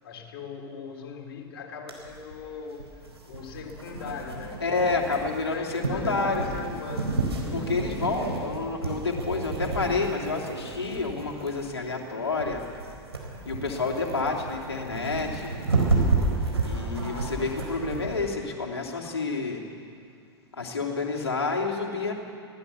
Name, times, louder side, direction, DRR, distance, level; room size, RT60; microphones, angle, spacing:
voice 1, 0.0-2.9 3.3-4.7 5.2-7.3, left 6 dB, 60° left, 1 dB, 3.8 m, -39 dB
sound 1, 1.9-18.2, right 3 dB, 85° right, 4.3 m, -31 dB
voice 2, 4.6-6.5 7.5-12.6 13.4-15.5 16.6-19.6 20.6-22.1, left 3 dB, 75° left, 1 dB, 3.2 m, -29 dB
25.5 x 17.0 x 7.1 m, 2.3 s
figure-of-eight pair, 90°, 13 cm